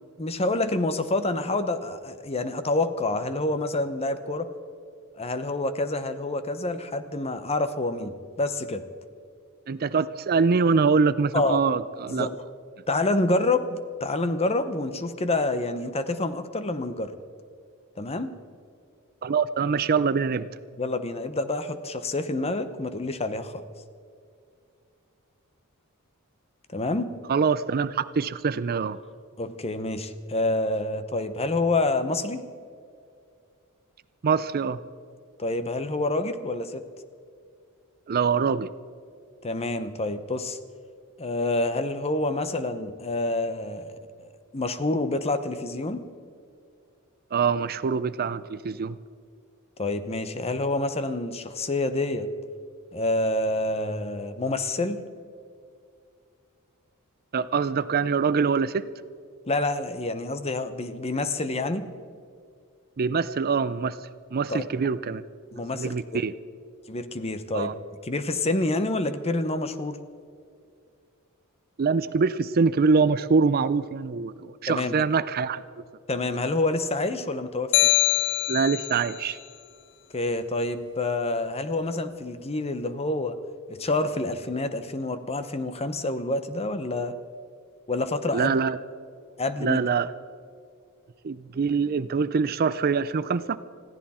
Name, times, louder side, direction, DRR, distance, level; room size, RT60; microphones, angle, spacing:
voice 1, 0.2-4.5 5.1-8.8 11.3-11.6 12.1-12.4 12.9-17.1 18.0-18.3 20.8-23.6 26.7-27.1 29.4-32.5 35.4-36.8 39.4-40.6 41.2-46.0 49.8-52.3 52.9-55.0 59.5-61.9 64.5-64.7 65.5-66.2 66.9-67.7 68.0-70.0 74.7-74.9 76.1-77.9 80.1-83.3 83.7-87.1 87.9-88.6 89.4-89.9, left 2 dB, 30° left, 11 dB, 0.9 m, -27 dB
voice 2, 9.7-12.3 19.2-20.5 27.3-29.0 34.2-34.8 38.1-38.7 47.3-49.0 57.3-58.8 63.0-64.0 64.3-65.2 65.7-66.3 67.5-67.7 71.8-75.6 78.5-79.4 88.3-88.8 89.6-90.1 91.2-93.6, right 5 dB, 45° right, 15 dB, 0.5 m, -24 dB
sound 1, 77.7-79.1, left 15 dB, 55° left, 0.3 m, -23 dB
21.0 x 15.0 x 4.3 m, 2.3 s
head